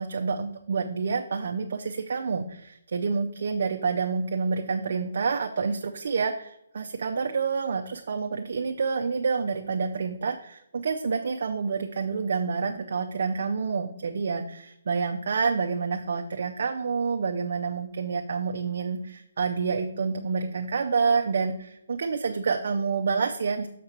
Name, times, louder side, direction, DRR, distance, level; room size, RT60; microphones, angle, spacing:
voice 1, 0.0-23.7, right 5 dB, 50° right, 3 dB, 0.5 m, -28 dB
6.6 x 4.3 x 6.6 m, 0.79 s
hypercardioid pair, 175°, 0 cm